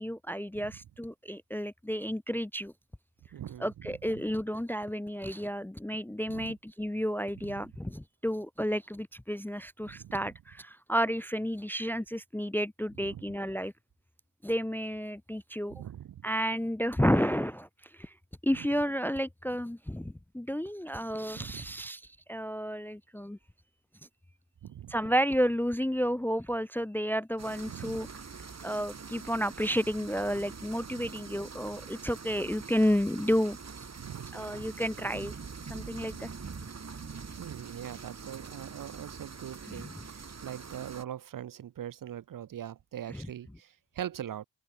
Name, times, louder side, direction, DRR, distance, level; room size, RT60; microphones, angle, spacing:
voice 1, 0.0-2.7 3.6-13.7 14.4-15.7 16.2-17.7 17.9-18.1 18.4-22.0 22.3-23.4 24.9-28.1 28.6-33.6 34.3-35.4 35.7-36.3 39.7-40.0 43.1-43.3, equal, 5° left, 0.5 m, -31 dB
voice 2, 3.3-4.2 6.3-6.6 7.4-7.7 9.8-10.2 12.9-13.3 15.7-16.3 18.5-18.8 21.3-21.8 24.6-25.0 27.7-28.1 30.9-31.1 34.0-34.6 37.1-44.4, right 10 dB, 70° right, 0.7 m, -42 dB
sound 1, 27.4-41.0, right 5 dB, 50° right, 4.1 m, -44 dB
open air
wide cardioid pair, 90°, 35 cm